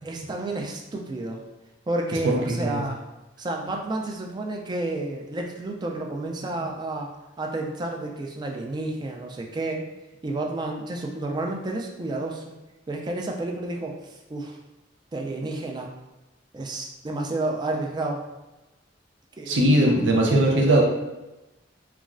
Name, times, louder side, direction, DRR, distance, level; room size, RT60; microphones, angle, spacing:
voice 1, 0.0-1.4 1.9-3.0 3.4-7.1 7.4-9.9 10.2-12.6 12.9-14.6 15.1-15.9 16.5-18.2 19.4-19.9 20.4-20.8, right 2 dB, 25° right, 1 dB, 0.3 m, -31 dB
voice 2, 2.2-2.8 19.5-20.8, right 1 dB, 80° right, 0 dB, 0.5 m, -20 dB
3.0 x 2.3 x 2.4 m, 1.0 s
head